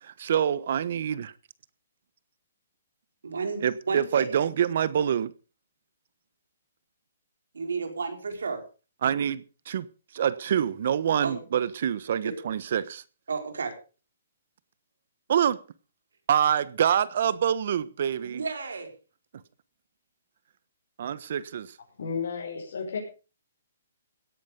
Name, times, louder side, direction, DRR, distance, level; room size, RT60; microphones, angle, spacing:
voice 1, 0.0-1.3 3.6-5.3 9.0-9.9 10.1-13.0 15.3-15.6 16.3-18.4 21.0-21.7, right 9 dB, 55° right, 1.2 m, -26 dB
voice 2, 3.2-4.2 7.5-8.6 11.2-11.4 12.2-12.3 13.3-13.7 18.2-18.9, right 4 dB, 85° right, 5.2 m, -32 dB
voice 3, 22.0-23.0, left 5 dB, 70° left, 5.9 m, -32 dB
17.0 x 10.5 x 5.3 m
hypercardioid pair, 150°, 0 cm